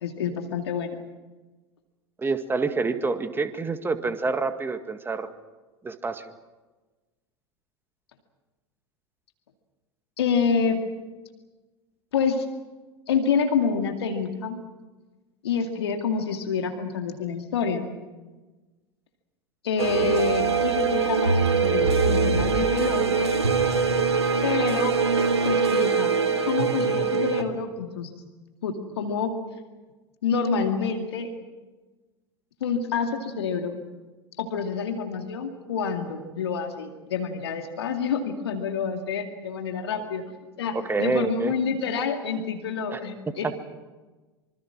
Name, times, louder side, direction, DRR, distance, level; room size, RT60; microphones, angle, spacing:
voice 1, 0.0-1.0 10.2-10.8 12.1-12.4 13.1-14.6 15.4-17.9 19.6-23.3 24.4-25.0 25.4-26.2 26.5-28.1 28.6-29.3 30.2-31.3 32.6-33.8 34.4-40.2 40.6-43.6, left 5 dB, 70° left, 5 dB, 2.3 m, -27 dB
voice 2, 2.2-5.3 5.8-6.2 40.7-41.5 42.9-43.0, right 3 dB, 15° right, 9 dB, 1.9 m, -27 dB
sound 1, 19.8-27.4, right 5 dB, 80° right, 1.8 m, -23 dB
25.5 x 25.0 x 6.2 m, 1.2 s
figure-of-eight pair, 80°, 14 cm